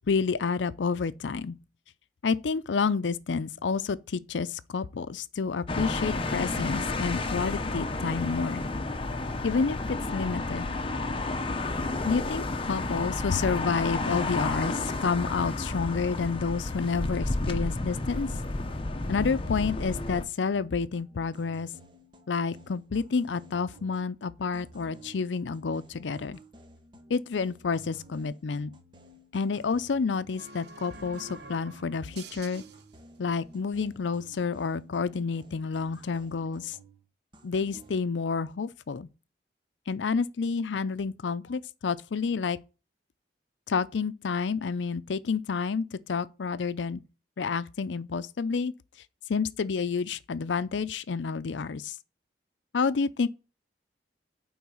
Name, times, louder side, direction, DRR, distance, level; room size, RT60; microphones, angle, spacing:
voice 1, 0.1-1.6 2.2-8.6 9.4-10.7 12.0-18.3 19.1-21.7 22.3-26.4 27.1-28.7 29.3-32.6 33.2-36.8 37.4-39.1 39.9-42.6 43.7-47.0 47.4-48.7 49.3-52.0 52.7-53.3, left 5 dB, 85° left, 0.5 m, -29 dB
sound 1, 5.7-20.2, left 2 dB, 30° left, 0.8 m, -31 dB
sound 2, 20.4-24.2 24.5-30.7 30.9-37.1 37.3-38.0, right 1 dB, 25° right, 1.0 m, -53 dB
sound 3, 30.4-33.3, right 3 dB, 60° right, 0.7 m, -47 dB
9.5 x 3.9 x 5.4 m
head